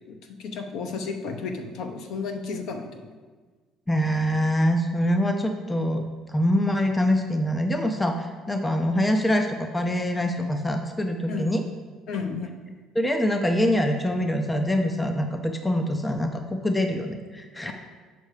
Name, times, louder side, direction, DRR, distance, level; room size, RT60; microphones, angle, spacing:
voice 1, 0.1-3.1 11.3-11.5 12.1-12.7, left 4 dB, 60° left, 5 dB, 0.8 m, -33 dB
voice 2, 3.9-11.6 12.9-17.7, equal, 10° left, 5 dB, 0.4 m, -24 dB
6.6 x 5.5 x 4.9 m, 1.4 s
cardioid pair, 155°, 0 cm